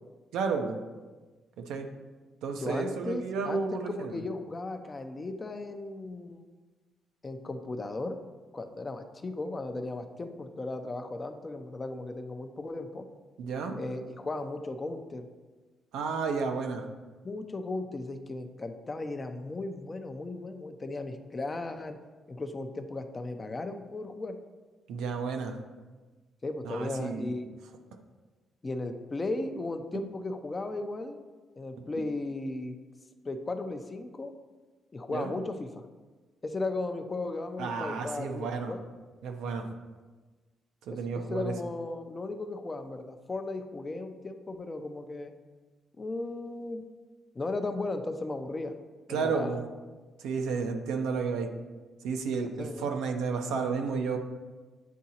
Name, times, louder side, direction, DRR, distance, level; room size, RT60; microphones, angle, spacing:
voice 1, 0.3-0.8 1.6-1.9 2.4-4.2 13.4-13.8 15.9-16.9 24.9-25.6 26.6-27.3 35.1-35.3 37.6-38.7 39.2-39.7 40.9-41.5 49.1-49.6 50.2-51.5 52.0-54.2, right 5 dB, 85° right, 4 dB, 0.6 m, -32 dB
voice 2, 2.6-6.4 7.2-8.2 8.5-13.1 13.8-15.3 17.2-22.0 22.3-24.4 26.4-27.5 28.6-31.2 31.6-32.8 33.2-34.3 34.9-35.8 36.4-38.8 40.9-45.3 46.0-46.8 47.3-48.7 49.1-49.6 52.6-52.9, left 2 dB, 30° left, 7 dB, 0.5 m, -36 dB
9.2 x 3.7 x 2.8 m, 1.3 s
cardioid pair, 90°, 0 cm